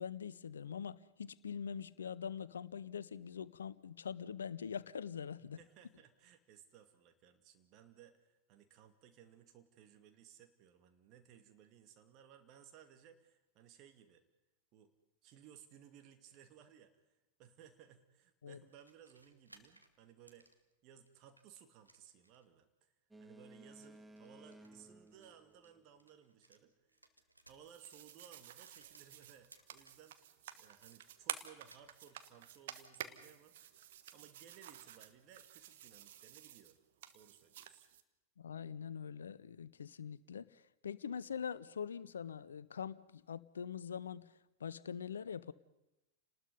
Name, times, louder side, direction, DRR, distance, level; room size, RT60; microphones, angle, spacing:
voice 1, 0.0-5.6 18.4-18.6 38.4-44.3 44.6-45.5, left 7 dB, 70° left, 18 dB, 0.7 m, -43 dB
voice 2, 5.4-14.2 14.7-14.9 15.2-20.5 20.8-22.9 23.2-27.1 27.5-36.8 37.1-37.8, right 9 dB, 40° right, 6 dB, 2.4 m, -61 dB
sound 1, 18.7-21.4 21.8-22.5 23.6-26.6 26.9-30.1 30.4-33.0, right 1 dB, 85° right, 1.7 m, -67 dB
Boat Water vehicle, 23.1-26.2, right 1 dB, 5° right, 0.9 m, -58 dB
sound 2, 27.5-38.0, right 11 dB, 55° right, 1.4 m, -50 dB
29.5 x 19.5 x 5.4 m, 0.95 s
figure-of-eight pair, 90°, 0 cm